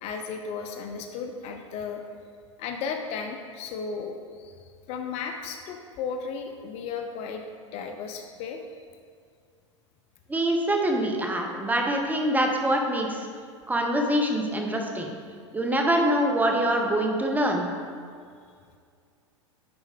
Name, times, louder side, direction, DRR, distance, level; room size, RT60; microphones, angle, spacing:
voice 1, 0.0-2.0 2.6-4.6 4.9-7.4 7.7-8.6, left 5 dB, 40° left, 5 dB, 0.6 m, -34 dB
voice 2, 10.3-13.3 13.7-15.2 15.5-17.6, right 1 dB, 10° right, 2 dB, 0.9 m, -24 dB
9.8 x 4.6 x 3.6 m, 2.2 s
hypercardioid pair, 95°, 16 cm